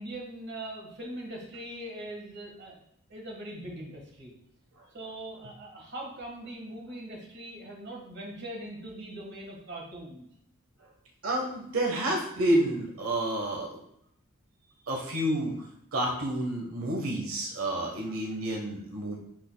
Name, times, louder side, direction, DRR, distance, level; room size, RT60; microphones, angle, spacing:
voice 1, 0.0-2.8 3.1-4.3 4.9-10.3, right 1 dB, 50° right, -1 dB, 1.7 m, -41 dB
voice 2, 11.2-13.8 14.9-15.7 15.9-19.2, right 1 dB, 85° right, -1 dB, 1.3 m, -29 dB
11.0 x 4.2 x 2.3 m, 0.73 s
head